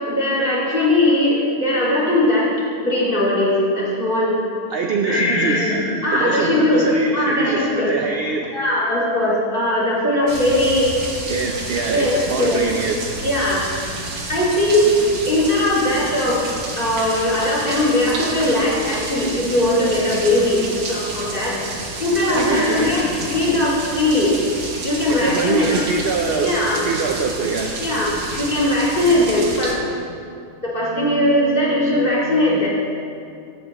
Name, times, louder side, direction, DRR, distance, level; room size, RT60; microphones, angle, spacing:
voice 1, 0.0-2.5 2.7-4.3 5.0-7.9 8.5-10.9 11.8-12.6 13.2-13.6 14.3-15.0 15.3-16.4 16.8-20.6 20.9-21.6 22.0-24.3 24.8-25.9 26.4-26.8 27.8-28.1 28.4-30.3 30.6-32.7, left 1 dB, 35° left, -7 dB, 2.3 m, -19 dB
voice 2, 4.7-5.7 6.1-8.5 11.3-13.2 22.3-22.9 25.1-27.8, right 4 dB, 65° right, 2 dB, 0.6 m, -24 dB
sound 1, 10.3-29.7, right 2 dB, 85° right, 1.8 m, -30 dB
14.0 x 8.4 x 3.0 m, 2.4 s
omnidirectional pair, 1.7 m